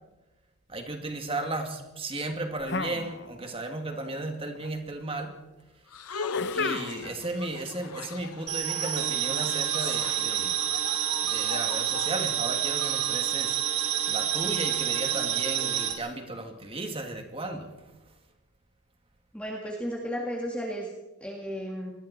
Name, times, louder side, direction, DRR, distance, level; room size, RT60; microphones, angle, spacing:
voice 1, 0.7-5.4 6.5-10.6 11.2-13.6 14.1-17.7, right 2 dB, 25° right, 4 dB, 2.5 m, -35 dB
sound 1, 2.7-3.7 3.9-4.7 6.3-7.2, left 4 dB, 50° left, 0.8 m, -34 dB
sound 2, 5.9-12.8, left 4 dB, 90° left, 1.1 m, -39 dB
sound 3, 8.5-15.9, right 10 dB, 80° right, 3.4 m, -28 dB
voice 2, 19.3-20.9 21.2-21.9, equal, 5° left, -1 dB, 2.0 m, -34 dB
27.5 x 21.0 x 4.4 m, 1.0 s
head